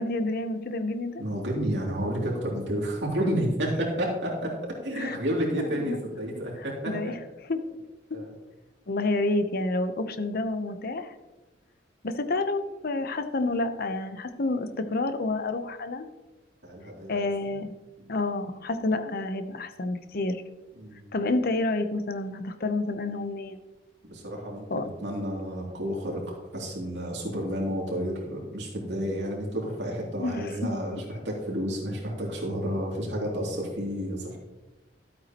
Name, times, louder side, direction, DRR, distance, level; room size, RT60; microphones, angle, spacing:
voice 1, 0.0-1.2 5.0-5.2 5.6-6.0 6.9-7.6 8.9-11.1 12.0-16.1 17.1-17.7 18.1-20.4 21.1-23.6 24.7-24.9 30.2-30.7, left 2 dB, 55° left, 9 dB, 0.8 m, -29 dB
voice 2, 1.2-4.5 4.8-7.1 8.1-8.3 16.6-17.5 20.7-21.1 24.0-34.4, equal, 70° right, -2 dB, 2.9 m, -31 dB
13.0 x 8.3 x 3.0 m, 1.1 s
head